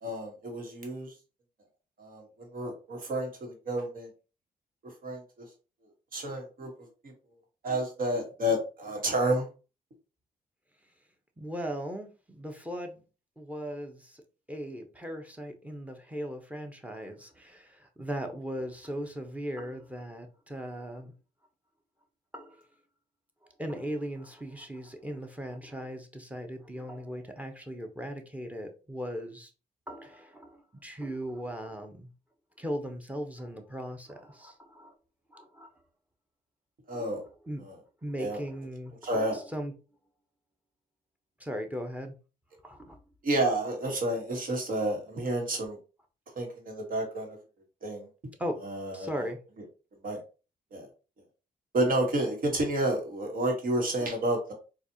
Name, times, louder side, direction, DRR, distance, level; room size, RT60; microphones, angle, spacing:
voice 1, 0.0-1.1 2.0-4.1 4.8-5.5 6.1-6.7 7.0-7.1 7.6-9.5 36.9-37.2 37.6-37.8 38.2-38.4 39.0-39.4 43.2-45.8 46.3-47.4 47.8-48.1 48.6-49.3 50.0-50.2 50.7-50.9 51.7-54.5, right 1 dB, 60° right, 1.4 m, -30 dB
voice 2, 11.4-13.0 13.4-14.2 14.5-21.1 22.3-22.7 23.6-29.5 29.9-32.1 32.6-34.9 35.3-35.7 37.5-37.6 38.0-39.7 41.4-42.1 42.6-43.0 48.4-48.6 48.9-49.4, equal, 10° right, 0.9 m, -38 dB
4.1 x 2.4 x 2.8 m
cardioid pair, 70°, 17 cm